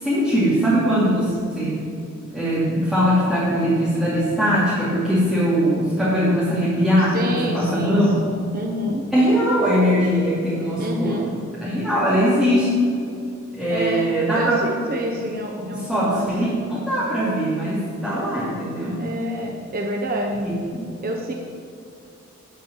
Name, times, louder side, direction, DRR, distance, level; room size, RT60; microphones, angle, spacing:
voice 1, 0.0-1.8 2.3-8.2 9.1-11.2 11.6-12.7 13.5-14.6 15.7-19.0 20.4-20.8, equal, ahead, -11 dB, 2.6 m, -21 dB
voice 2, 7.0-9.0 10.8-11.3 11.8-12.4 13.7-14.1 14.4-16.3 19.0-20.5 21.0-21.3, equal, 45° right, 1 dB, 1.1 m, -28 dB
12.0 x 5.3 x 8.9 m, 2.5 s
head